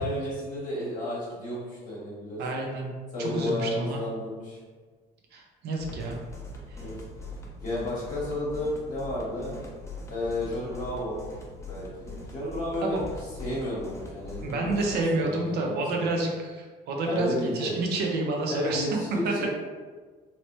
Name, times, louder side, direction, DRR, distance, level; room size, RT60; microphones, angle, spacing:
voice 1, 0.0-2.4 3.1-4.6 6.8-6.9 7.6-9.6 10.1-11.2 11.6-13.0 13.4-16.1 17.0-17.8 18.5-19.5, left 1 dB, 50° left, -7 dB, 0.9 m, -32 dB
voice 2, 2.4-2.9 3.2-4.0 5.3-6.1 6.7-6.8 12.8-13.0 14.4-18.9 19.2-19.3, right 2 dB, 75° right, 1 dB, 0.6 m, -29 dB
sound 1, 5.8-15.0, left 2 dB, 15° left, 0.5 m, -42 dB
2.8 x 2.0 x 2.9 m, 1.4 s
cardioid pair, 110°, 17 cm